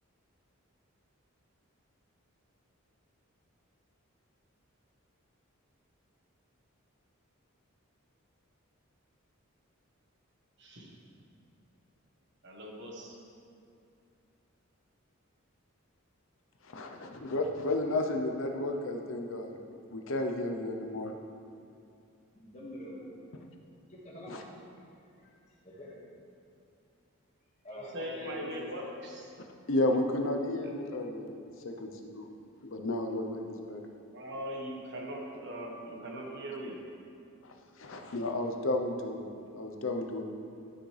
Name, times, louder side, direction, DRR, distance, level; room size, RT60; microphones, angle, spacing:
voice 1, 10.6-11.0 12.4-13.2 27.7-29.3 34.1-36.8 39.4-39.5, equal, 55° right, -1 dB, 1.4 m, -40 dB
voice 2, 16.7-19.6 19.9-21.1 23.3-23.4 24.3-24.4 29.7-32.3 32.7-33.9 37.4-37.5 37.8-40.2, left 2 dB, 65° left, 3 dB, 0.8 m, -33 dB
voice 3, 22.3-23.3 23.9-24.5 25.2-25.3 25.6-25.9 27.6-28.9, left 1 dB, 30° left, -5 dB, 1.7 m, -45 dB
12.5 x 6.2 x 3.3 m, 2.6 s
head